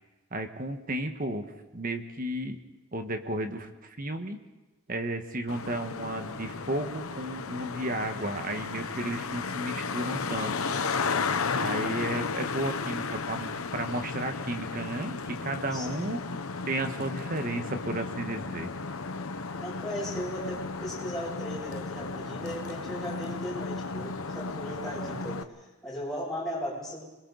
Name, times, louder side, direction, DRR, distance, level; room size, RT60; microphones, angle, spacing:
voice 1, 0.3-1.5 1.7-2.6 2.9-4.4 4.9-10.5 11.5-16.2 16.7-18.7, right 1 dB, 40° right, 6 dB, 1.4 m, -33 dB
Traffic noise roadway noise, 5.5-25.4, left 4 dB, 80° left, 0.9 m, -34 dB
voice 2, 15.7-16.1 19.6-27.0, equal, ahead, -7 dB, 7.8 m, -37 dB
29.0 x 22.0 x 4.0 m, 1.1 s
head